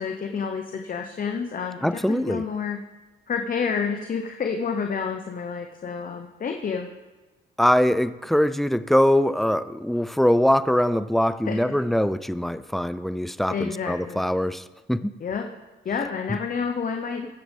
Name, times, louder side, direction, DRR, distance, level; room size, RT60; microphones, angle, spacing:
voice 1, 0.0-2.8 3.3-6.9 11.5-11.6 13.5-14.2 15.2-15.5 15.8-17.3, left 6 dB, 45° left, 4 dB, 1.0 m, -29 dB
voice 2, 1.8-2.4 7.6-15.1, equal, ahead, 14 dB, 0.5 m, -22 dB
23.0 x 7.8 x 3.5 m, 1.2 s
cardioid pair, 90°, 20 cm